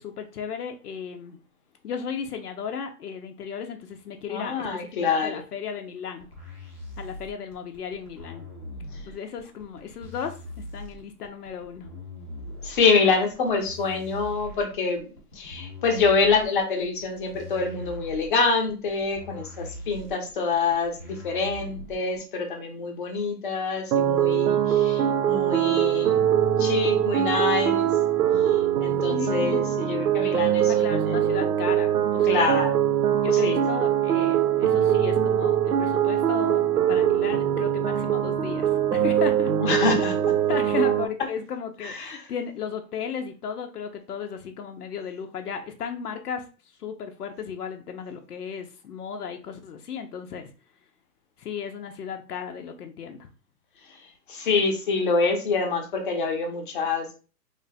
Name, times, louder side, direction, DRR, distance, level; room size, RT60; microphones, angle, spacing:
voice 1, 0.0-1.4 1.8-6.3 7.0-8.5 9.1-10.4 10.7-11.9 29.1-29.9 30.7-32.6 33.2-39.5 40.5-46.4 46.8-50.5 51.4-53.3, left 6 dB, 75° left, 5 dB, 0.7 m, -35 dB
voice 2, 4.3-5.4 12.6-15.1 15.4-26.3 26.6-27.9 28.4-31.2 32.2-32.7 33.3-33.6 39.6-40.1 41.8-42.2 54.3-57.1, left 4 dB, 35° left, 2 dB, 0.8 m, -26 dB
sound 1, 6.2-22.2, left 1 dB, 10° right, 0.5 m, -41 dB
sound 2, 23.9-41.0, right 10 dB, 75° right, 0.6 m, -22 dB
3.2 x 2.1 x 4.0 m, 0.35 s
hypercardioid pair, 155°, 47 cm